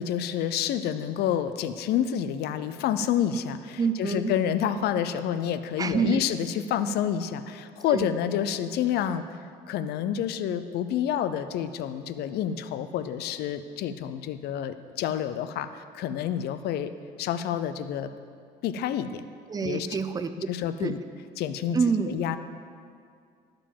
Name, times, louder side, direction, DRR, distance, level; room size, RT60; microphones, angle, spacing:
voice 1, 0.0-9.2 9.7-16.9 17.2-18.1 18.6-19.3 19.6-20.0 20.5-21.0 21.4-21.8 22.1-22.4, left 9 dB, 75° left, 12 dB, 0.6 m, -28 dB
voice 2, 3.8-4.4 5.8-6.2 7.9-8.1 19.5-20.3 20.8-21.0 21.7-22.2, right 5 dB, 20° right, 10 dB, 0.5 m, -27 dB
11.5 x 5.3 x 7.3 m, 2.3 s
cardioid pair, 110°, 17 cm